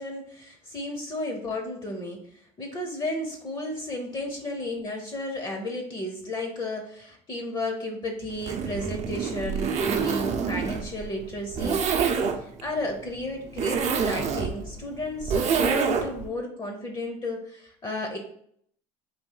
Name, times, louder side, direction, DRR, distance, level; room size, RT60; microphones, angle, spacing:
voice 1, 0.0-2.2 2.6-11.8 12.4-18.2, left 1 dB, 25° left, 3 dB, 0.7 m, -33 dB
Zipper (clothing), 8.3-16.3, right 6 dB, 45° right, 0.6 m, -27 dB
4.2 x 2.7 x 3.8 m, 0.66 s
cardioid pair, 120°, 16 cm